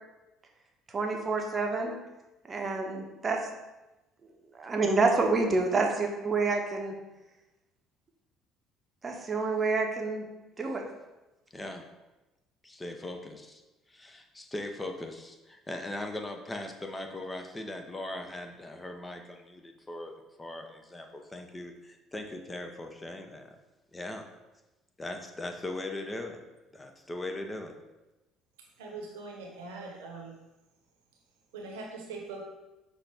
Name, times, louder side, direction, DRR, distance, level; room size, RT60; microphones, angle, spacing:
voice 1, 0.9-1.9 2.5-3.4 4.6-6.9 9.0-10.2 10.6-10.8, right 3 dB, 30° right, 2 dB, 0.8 m, -28 dB
voice 2, 11.5-11.9 12.6-13.6 13.9-23.6 23.9-24.3 25.0-26.4 26.7-27.8, left 1 dB, 20° left, 4 dB, 0.6 m, -39 dB
voice 3, 28.8-30.3 31.5-32.4, right 3 dB, 75° right, 0 dB, 0.8 m, -41 dB
5.6 x 2.6 x 3.5 m, 1.0 s
hypercardioid pair, 55°, 0 cm